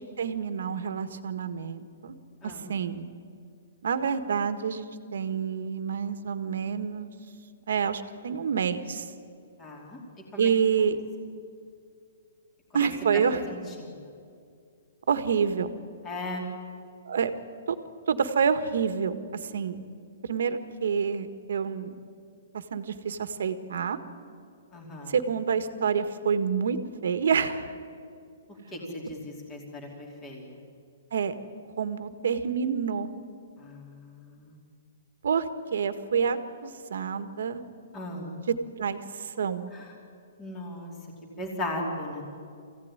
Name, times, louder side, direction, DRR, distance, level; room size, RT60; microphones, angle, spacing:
voice 1, 0.2-2.1 2.4-3.1 3.8-7.1 7.7-9.1 10.4-11.0 12.7-13.4 15.1-15.7 17.0-17.3 17.7-17.8 18.1-19.1 19.5-19.8 20.2-21.9 22.7-24.0 25.1-26.8 27.0-27.7 31.1-31.3 31.8-33.1 35.2-37.6 38.8-39.7, right 6 dB, 65° right, 11 dB, 1.5 m, -28 dB
voice 2, 9.6-10.0 10.3-10.5 12.7-13.2 13.5-14.0 16.0-16.4 24.7-25.1 28.7-30.6 33.6-34.5 37.9-38.3 39.7-39.9 40.4-40.9 41.4-42.2, left 1 dB, 15° left, -1 dB, 2.9 m, -37 dB
24.5 x 16.0 x 9.8 m, 2.4 s
hypercardioid pair, 175°, 0 cm